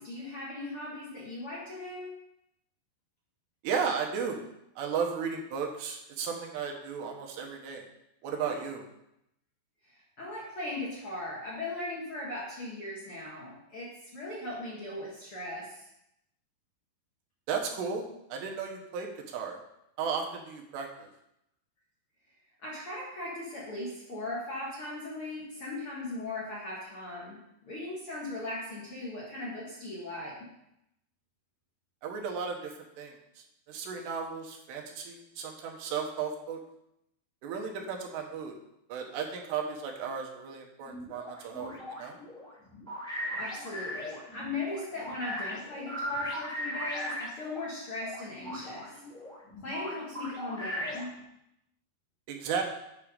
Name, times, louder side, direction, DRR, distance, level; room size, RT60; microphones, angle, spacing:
voice 1, 0.0-2.2 10.2-15.9 22.6-30.4 43.3-48.9 49.6-51.1, left 2 dB, 50° left, -6 dB, 1.9 m, -38 dB
voice 2, 3.6-4.4 4.8-7.8 8.2-8.9 17.5-19.6 20.0-21.1 32.0-33.1 33.7-36.6 37.4-38.5 38.9-42.2 52.3-52.6, right 6 dB, 90° right, 2 dB, 3.3 m, -34 dB
sound 1, 40.8-47.6 48.0-51.2, equal, ahead, 1.1 m, -38 dB
8.7 x 6.0 x 5.0 m, 0.82 s
omnidirectional pair, 4.8 m